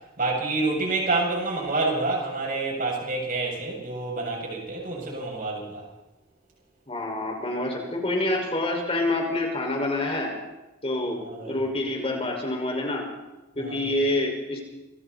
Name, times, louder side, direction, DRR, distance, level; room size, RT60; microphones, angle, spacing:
voice 1, 0.2-5.8 11.2-11.6 13.6-13.9, right 3 dB, 40° right, -1 dB, 7.7 m, -28 dB
voice 2, 6.9-10.3 10.8-13.0 13.6-14.6, left 1 dB, 25° left, 1 dB, 5.5 m, -27 dB
28.0 x 23.5 x 4.3 m, 1.0 s
head